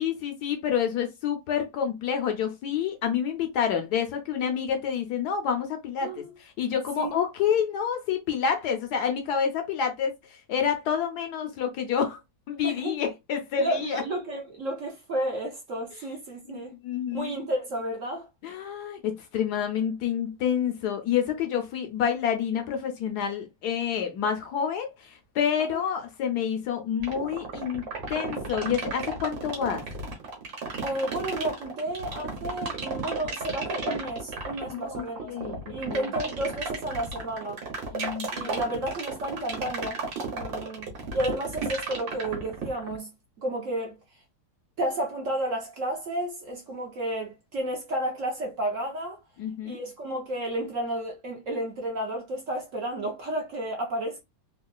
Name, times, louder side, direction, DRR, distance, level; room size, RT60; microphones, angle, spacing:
voice 1, 0.0-6.2 6.6-12.2 12.5-14.0 16.5-17.3 18.4-29.8 34.7-36.1 37.9-38.5 49.4-49.8, left 8 dB, 70° left, 1.1 m, -28 dB
voice 2, 12.6-13.0 13.6-16.7 17.1-18.3 25.6-25.8 30.8-35.3 35.7-37.6 38.3-40.0 40.3-43.1 43.4-44.0 44.8-49.2 49.6-54.2, right 1 dB, 55° right, 1.0 m, -32 dB
sound 1, 27.0-43.0, right 4 dB, 85° right, 1.8 m, -33 dB
3.7 x 2.3 x 2.2 m
omnidirectional pair, 2.0 m